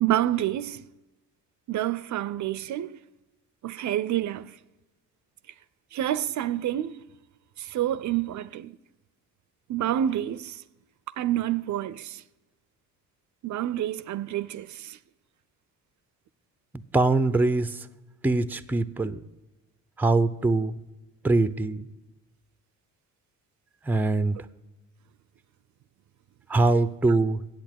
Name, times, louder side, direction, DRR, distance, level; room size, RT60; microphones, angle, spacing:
voice 1, 0.0-0.8 1.7-3.0 3.6-4.5 5.9-7.0 7.6-8.8 9.7-10.6 11.2-12.2 13.4-15.0, right 12 dB, 55° right, 0.5 m, -28 dB
voice 2, 16.9-17.8 18.2-19.2 20.0-20.8 21.2-21.9 23.9-24.4 26.5-27.4, right 2 dB, 5° right, 0.5 m, -23 dB
8.6 x 8.1 x 9.0 m
cardioid pair, 95°, 34 cm